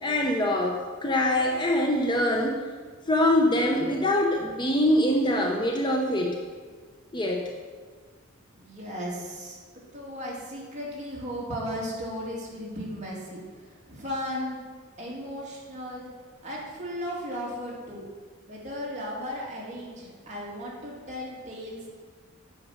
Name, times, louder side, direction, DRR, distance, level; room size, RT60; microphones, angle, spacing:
voice 1, 0.0-2.6 3.1-6.4 7.1-7.4, left 1 dB, 20° left, 1 dB, 0.7 m, -24 dB
voice 2, 8.5-14.6 15.0-16.1 16.4-18.0 18.5-21.9, equal, 35° right, -5 dB, 2.4 m, -36 dB
8.8 x 5.0 x 6.4 m, 1.5 s
head